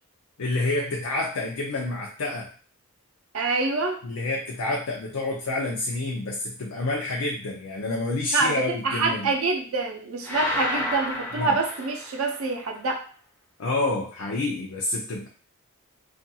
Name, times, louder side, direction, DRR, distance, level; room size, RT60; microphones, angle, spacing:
voice 1, 0.4-2.5 4.0-9.3 11.4-11.6 13.6-15.3, left 2 dB, 90° left, -1 dB, 0.5 m, -28 dB
voice 2, 3.3-4.0 8.3-13.0, right 3 dB, 70° right, 2 dB, 0.6 m, -26 dB
sound 1, 10.2-12.5, left 1 dB, 10° left, 0.4 m, -31 dB
2.5 x 2.3 x 2.7 m, 0.41 s
head